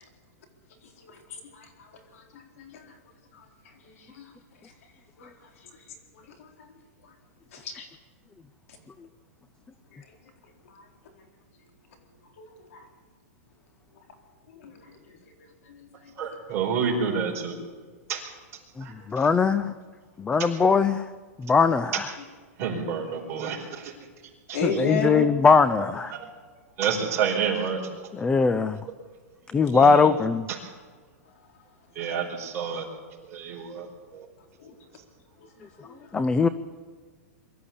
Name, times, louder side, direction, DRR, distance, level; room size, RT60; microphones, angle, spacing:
voice 1, 1.0-1.7 2.1-2.8 4.1-4.2 5.2-5.3 7.5-7.9 12.4-12.5 14.6-14.7 15.7-15.9 24.5-25.3 34.6-34.7 35.8-35.9, left 3 dB, 65° left, 4 dB, 4.1 m, -31 dB
voice 2, 16.2-17.6 18.1-18.2 18.8-19.3 22.6-23.9 24.5-24.6 26.1-26.3 26.8-27.8 29.7-30.1 31.9-32.9 33.3-33.9 34.1-34.2, right 6 dB, 30° right, -1 dB, 4.8 m, -29 dB
voice 3, 18.8-19.7 20.2-21.0 21.4-22.1 24.6-26.1 28.1-28.8 29.5-30.5 36.1-36.5, left 5 dB, 10° left, 15 dB, 0.5 m, -21 dB
23.0 x 13.0 x 8.5 m, 1.5 s
hypercardioid pair, 150°, 8 cm